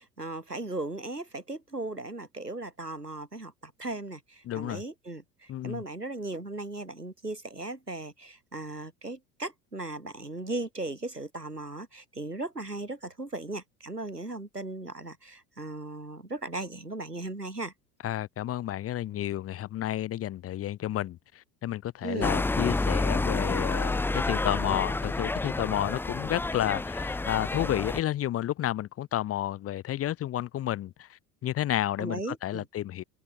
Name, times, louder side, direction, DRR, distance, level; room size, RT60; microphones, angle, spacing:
voice 1, 0.0-17.7 22.0-22.3 32.0-32.7, right 2 dB, 90° right, 3.9 m, -37 dB
voice 2, 4.4-4.8 5.5-5.8 18.0-33.0, left 12 dB, 30° left, 1.0 m, -31 dB
sound 1, 22.2-28.0, left 2 dB, 5° left, 0.6 m, -29 dB
open air
figure-of-eight pair, 70°, 46 cm